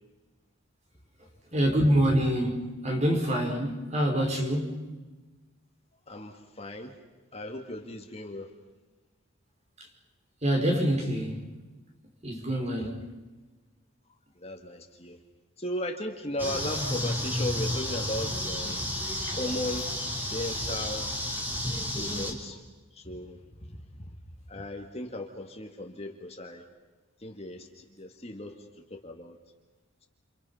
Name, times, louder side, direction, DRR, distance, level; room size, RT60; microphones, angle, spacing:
voice 1, 1.5-4.8 10.4-11.4 12.2-13.0 19.3-19.4, equal, 30° right, 5.2 m, -26 dB
voice 2, 6.1-7.0 7.3-8.5 12.8-12.9 14.3-15.2 15.6-18.8 19.3-19.9 20.3-21.2 22.0-24.2 24.5-26.7 27.2-29.4, left 1 dB, 30° left, 2.1 m, -37 dB
sound 1, 16.4-22.3, left 1 dB, 10° right, 4.1 m, -31 dB
29.0 x 29.0 x 5.8 m
head